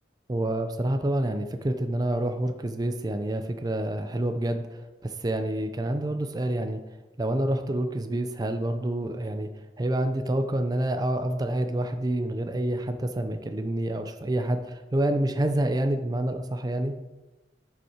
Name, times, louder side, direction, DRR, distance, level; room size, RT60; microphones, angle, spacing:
voice 1, 0.3-6.8 7.2-9.5 9.8-17.0, right 1 dB, 20° right, 7 dB, 0.4 m, -28 dB
8.0 x 5.5 x 4.3 m, 1.1 s
head